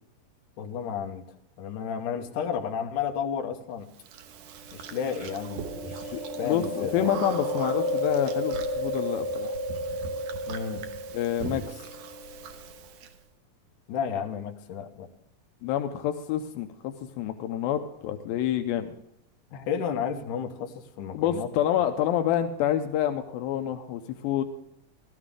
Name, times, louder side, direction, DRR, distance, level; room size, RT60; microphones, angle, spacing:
voice 1, 0.6-1.2 1.6-3.9 4.7-7.1 10.4-10.8 13.9-15.1 19.5-21.5, left 7 dB, 70° left, 3 dB, 2.5 m, -32 dB
Chewing mastication, 4.1-13.1, equal, 70° right, 2.3 m, -32 dB
voice 2, 6.1-9.5 11.1-11.8 15.6-18.9 21.1-24.4, left 10 dB, 85° left, 7 dB, 2.5 m, -28 dB
15.5 x 13.5 x 3.7 m, 0.76 s
omnidirectional pair, 4.2 m